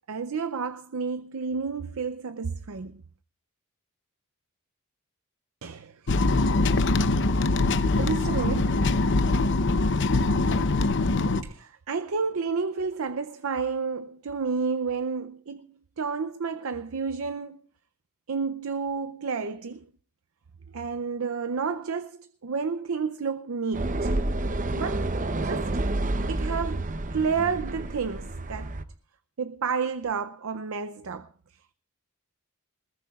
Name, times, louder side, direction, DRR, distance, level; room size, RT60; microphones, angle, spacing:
voice 1, 0.1-3.0 5.6-6.1 7.9-8.8 11.4-17.6 18.3-19.9 20.7-24.2 24.8-25.8 26.3-28.7 29.4-31.3, right 5 dB, 70° right, 0.6 m, -31 dB
sound 1, 6.1-11.4, left 2 dB, 55° left, 0.8 m, -23 dB
sound 2, 23.7-28.8, right 2 dB, 35° right, 0.8 m, -29 dB
21.0 x 20.0 x 2.4 m
head